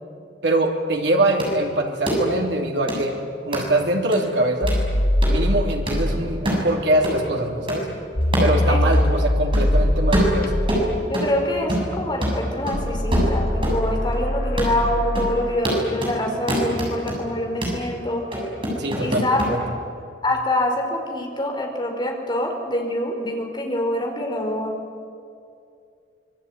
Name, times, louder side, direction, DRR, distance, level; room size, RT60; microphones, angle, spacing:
voice 1, 0.4-3.1 3.4-4.7 5.3-7.9 8.4-10.6 18.8-19.6, right 1 dB, 90° right, 1 dB, 3.0 m, -23 dB
sound 1, 1.4-1.5 2.1-2.2 2.9-3.0 3.5-3.6 4.1-4.2 4.7-4.8 5.2-5.4 5.9-6.0 6.4-6.7 7.0-7.2 7.7-7.8 8.3-8.5 8.9-9.0 9.5-9.7 10.1-11.3 11.7-12.0 12.2-13.8 14.1-14.2 14.6-14.8 15.1-15.3 15.6-16.2 16.5-17.2 17.6-17.8 18.3-19.5, equal, 30° right, 7.5 m, -24 dB
sound 2, 4.6-15.9, left 1 dB, 55° left, 2.4 m, -24 dB
voice 2, 11.0-18.2 19.0-19.6 20.2-24.7, left 1 dB, 25° left, 1 dB, 4.7 m, -25 dB
25.5 x 22.0 x 9.5 m, 2.4 s
head